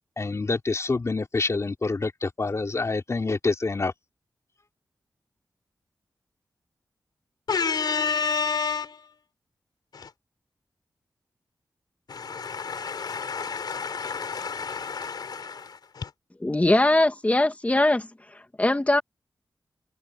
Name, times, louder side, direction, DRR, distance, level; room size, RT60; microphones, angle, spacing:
voice 1, 0.2-3.9, left 3 dB, 45° left, 3.1 m, -27 dB
voice 2, 7.5-9.0 9.9-10.1 12.1-16.1, left 5 dB, 80° left, 3.8 m, -30 dB
voice 3, 16.4-18.1 18.3-19.0, left 2 dB, 20° left, 2.1 m, -21 dB
wide cardioid pair, 70°, 7 cm